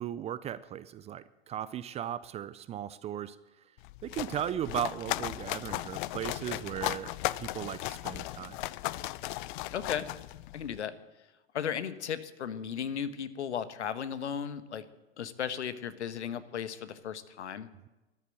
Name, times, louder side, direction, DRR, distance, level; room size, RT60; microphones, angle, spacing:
voice 1, 0.0-3.4 4.0-8.6, right 10 dB, 20° right, 16 dB, 0.4 m, -37 dB
sound 1, 3.8-10.8, left 17 dB, 45° left, 0.5 m, -36 dB
voice 2, 9.7-10.1 10.5-10.9 11.5-14.8 15.2-17.7, left 8 dB, 75° left, 13 dB, 1.3 m, -35 dB
13.5 x 11.0 x 7.7 m, 1.1 s
hypercardioid pair, 100°, 34 cm